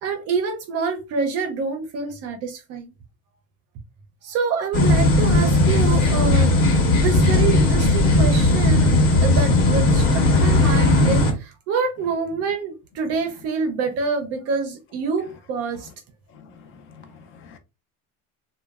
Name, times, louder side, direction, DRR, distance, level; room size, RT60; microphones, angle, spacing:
voice 1, 0.0-2.9 4.2-8.9 9.2-15.9, right 5 dB, 50° right, 0.5 m, -26 dB
sound 1, 4.7-11.3, left 2 dB, 80° left, 1.1 m, -17 dB
voice 2, 16.3-17.6, left 5 dB, 40° left, 0.5 m, -47 dB
3.0 x 2.1 x 2.3 m
cardioid pair, 175°, 33 cm